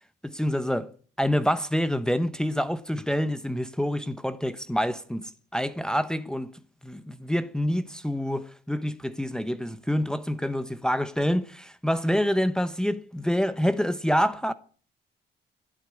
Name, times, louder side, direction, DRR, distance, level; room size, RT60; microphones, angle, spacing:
voice 1, 0.2-0.9 1.2-6.5 6.8-14.5, equal, 5° left, 0.9 m, -27 dB
11.5 x 8.6 x 9.7 m
cardioid pair, 90°, 20 cm